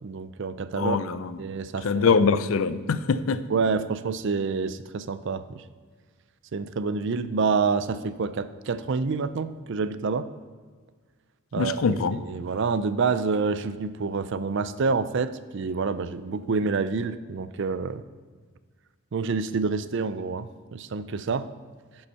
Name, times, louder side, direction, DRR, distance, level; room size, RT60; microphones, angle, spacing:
voice 1, 0.0-1.0 1.4-2.2 3.5-5.6 6.5-10.3 11.5-18.0 19.1-21.5, right 4 dB, 55° right, 13 dB, 0.4 m, -28 dB
voice 2, 0.8-1.4 1.8-3.4 11.6-12.2, left 5 dB, 70° left, 13 dB, 0.5 m, -23 dB
10.5 x 5.6 x 5.5 m, 1.5 s
head